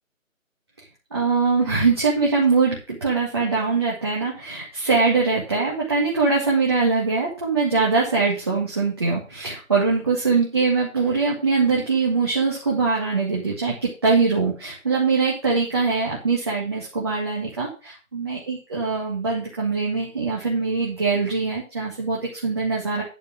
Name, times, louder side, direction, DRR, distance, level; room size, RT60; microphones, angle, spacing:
voice 1, 1.1-23.0, right 4 dB, 20° right, -5 dB, 1.9 m, -22 dB
10.5 x 4.9 x 7.5 m, 0.32 s
figure-of-eight pair, 170°, 41 cm